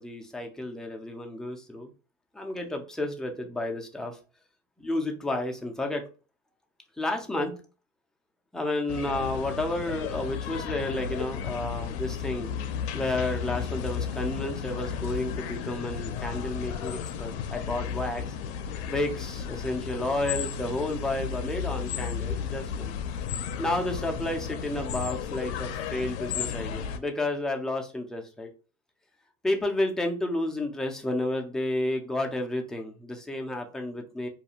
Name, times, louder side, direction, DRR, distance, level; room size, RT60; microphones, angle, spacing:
voice 1, 0.0-1.9 2.3-4.2 4.8-6.1 7.0-7.6 8.5-12.5 12.9-18.2 18.9-22.9 23.6-28.5 29.4-34.3, left 1 dB, ahead, 2 dB, 0.4 m, -31 dB
sound 1, 8.9-27.0, left 7 dB, 75° left, 0.5 m, -34 dB
2.4 x 2.3 x 2.8 m, 0.35 s
supercardioid pair, 105°, 32 cm